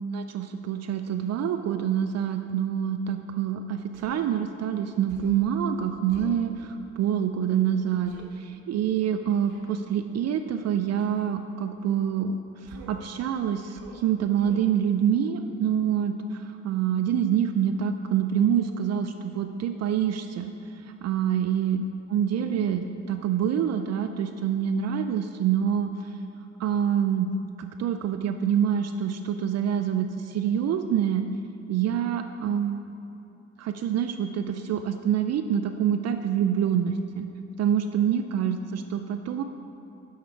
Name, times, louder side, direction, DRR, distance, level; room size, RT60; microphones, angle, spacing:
voice 1, 0.0-20.5 20.8-21.8 22.1-26.1 26.6-27.3 27.6-31.3 31.7-32.8 33.6-37.3 37.6-39.4, right 9 dB, 60° right, 7 dB, 0.4 m, -26 dB
Human voice, 3.9-4.2 5.1-5.5 6.1-6.4 8.0-8.3 9.5-9.8 11.0-11.3 12.7-13.0 13.7-14.0 14.4-14.7, right 3 dB, 90° right, 1.0 m, -47 dB
6.6 x 6.5 x 4.5 m, 2.9 s
cardioid pair, 90°, 30 cm